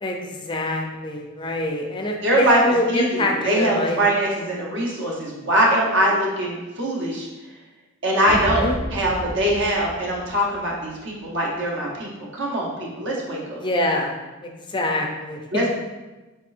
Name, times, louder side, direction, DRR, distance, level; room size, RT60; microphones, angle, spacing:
voice 1, 0.0-4.0 8.3-8.8 13.6-14.1 14.4-15.4, left 1 dB, 25° left, 1 dB, 0.5 m, -25 dB
voice 2, 2.2-2.6 2.9-7.3 8.0-13.6 15.5-15.7, right 1 dB, 60° right, -2 dB, 0.9 m, -22 dB
sound 1, 8.3-10.9, equal, 35° right, 0.7 m, -32 dB
4.3 x 4.1 x 2.5 m, 1.2 s
head